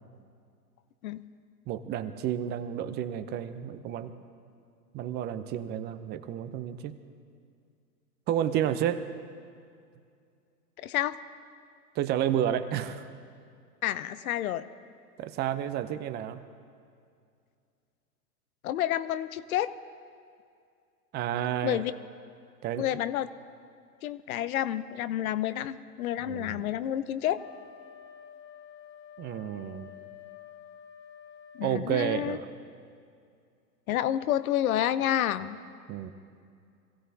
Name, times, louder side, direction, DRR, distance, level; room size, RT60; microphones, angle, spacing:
voice 1, 1.7-4.1 4.9-7.0 8.3-9.1 12.0-13.0 15.2-16.4 21.1-21.8 22.6-22.8 26.2-26.7 29.2-29.9 31.6-32.5 35.9-36.1, right 10 dB, 20° right, 11 dB, 0.6 m, -31 dB
voice 2, 10.8-11.2 13.8-14.7 18.6-19.7 21.6-21.9 22.8-23.3 24.0-27.4 31.5-32.4 33.9-35.6, left 12 dB, 60° left, 15 dB, 0.8 m, -29 dB
Wind instrument woodwind instrument, 27.3-31.8, left 9 dB, 25° left, 1.0 m, -49 dB
26.0 x 16.0 x 2.8 m, 2.3 s
hypercardioid pair, 110°, 48 cm